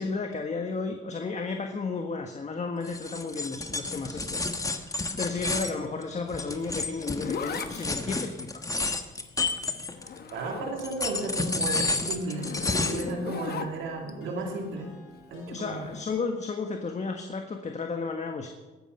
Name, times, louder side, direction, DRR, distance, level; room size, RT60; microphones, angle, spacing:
voice 1, 0.0-8.6 15.5-18.5, left 4 dB, 35° left, 4 dB, 1.4 m, -33 dB
sound 1, 2.8-10.3 10.8-13.1, left 3 dB, 15° left, 1.3 m, -31 dB
Zipper (clothing), 6.6-11.1 11.5-14.1 15.7-16.0, left 6 dB, 55° left, 1.2 m, -38 dB
voice 2, 10.3-14.9 15.3-15.9, right 2 dB, 85° right, 1 dB, 2.8 m, -34 dB
sound 2, 10.8-16.6, left 1 dB, 85° left, 4.1 m, -52 dB
21.0 x 9.2 x 5.5 m, 1.2 s
cardioid pair, 90°, 20 cm